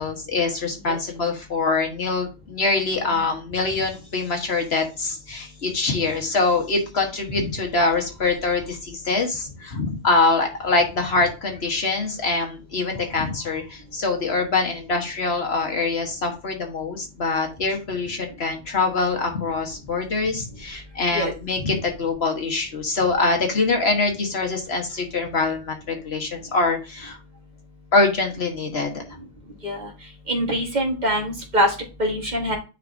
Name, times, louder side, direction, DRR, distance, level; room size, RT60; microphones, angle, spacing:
voice 1, 0.0-27.2 27.9-29.0, left 3 dB, 70° left, 2 dB, 1.6 m, -24 dB
voice 2, 30.3-31.7 32.0-32.6, equal, 45° right, 1 dB, 1.6 m, -23 dB
9.5 x 4.1 x 2.7 m, 0.31 s
omnidirectional pair, 1.1 m